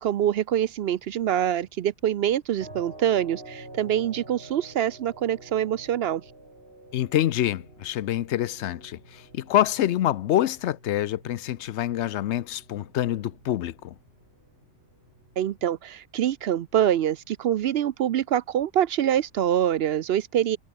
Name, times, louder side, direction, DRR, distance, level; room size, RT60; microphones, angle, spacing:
voice 1, 0.0-6.2 15.4-20.6, right 10 dB, 60° right, 0.7 m, -25 dB
sound 1, 2.6-15.6, right 1 dB, 45° right, 6.8 m, -49 dB
voice 2, 6.9-13.9, left 12 dB, 65° left, 0.8 m, -26 dB
omnidirectional pair, 1.4 m